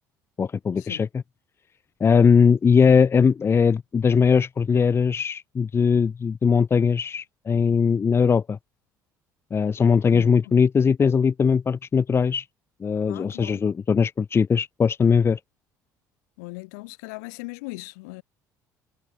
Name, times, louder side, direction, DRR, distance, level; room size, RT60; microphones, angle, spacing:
voice 1, 0.4-1.2 2.0-8.6 9.5-12.5 12.8-15.4, left 6 dB, 25° left, 0.7 m, -20 dB
voice 2, 10.1-10.6 13.1-13.6 16.4-18.2, left 27 dB, 65° left, 3.2 m, -39 dB
figure-of-eight pair, 55°, 10 cm